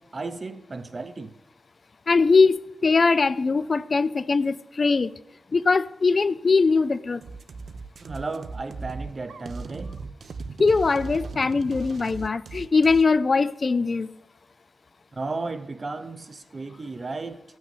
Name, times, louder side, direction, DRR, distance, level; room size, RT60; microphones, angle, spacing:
voice 1, 0.0-1.3 8.0-10.0 15.1-17.4, right 3 dB, 35° right, 0.8 m, -34 dB
voice 2, 2.1-5.1 5.5-7.2 10.6-14.1, left 4 dB, 45° left, 0.4 m, -21 dB
sound 1, 7.2-13.0, right 4 dB, 70° right, 0.7 m, -38 dB
14.5 x 6.3 x 7.3 m
wide cardioid pair, 120°, 0 cm